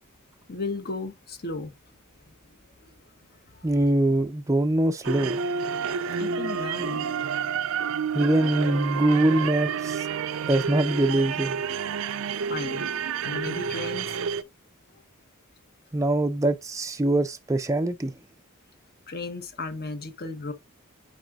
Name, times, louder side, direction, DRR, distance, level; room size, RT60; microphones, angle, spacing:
voice 1, 0.5-1.7 2.3-2.4 2.8-2.9 3.5-3.7 6.2-7.1 12.5-12.9 13.2-14.2 19.1-20.5, left 3 dB, 45° left, 1.0 m, -34 dB
voice 2, 3.6-5.5 8.1-10.1 10.5-11.6 15.9-18.1, right 1 dB, 15° right, 0.4 m, -23 dB
sound 1, 5.0-14.4, right 6 dB, 70° right, 0.5 m, -29 dB
9.2 x 4.9 x 2.4 m
head